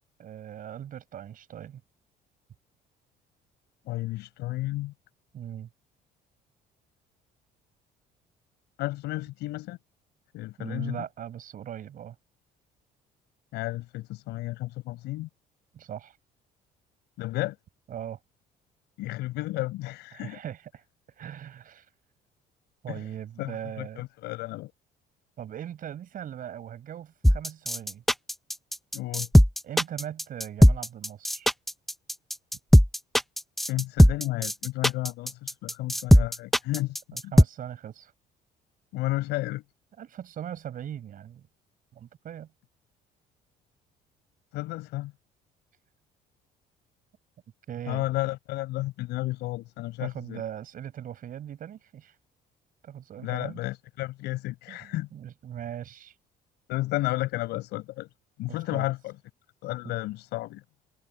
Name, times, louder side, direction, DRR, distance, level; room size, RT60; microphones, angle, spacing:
voice 1, 0.2-1.8 5.3-5.7 10.6-12.2 15.7-16.2 17.9-18.2 20.1-21.9 22.8-24.1 25.4-28.0 29.6-31.5 37.1-38.1 40.0-41.4 41.9-42.5 47.7-48.1 50.0-52.2 52.8-53.6 54.7-56.2 58.7-58.9, right 10 dB, 55° right, 6.0 m, -39 dB
voice 2, 3.9-4.9 8.8-9.8 10.3-11.0 13.5-15.3 17.2-17.6 19.0-20.4 22.9-23.1 23.4-24.7 28.9-29.3 33.7-37.3 38.9-39.6 44.5-45.1 47.9-50.4 53.2-55.1 56.7-58.1 58.4-59.1 59.6-60.6, left 18 dB, 85° left, 5.2 m, -32 dB
sound 1, 27.2-37.4, equal, ahead, 0.5 m, -18 dB
cardioid pair, 110°, 17 cm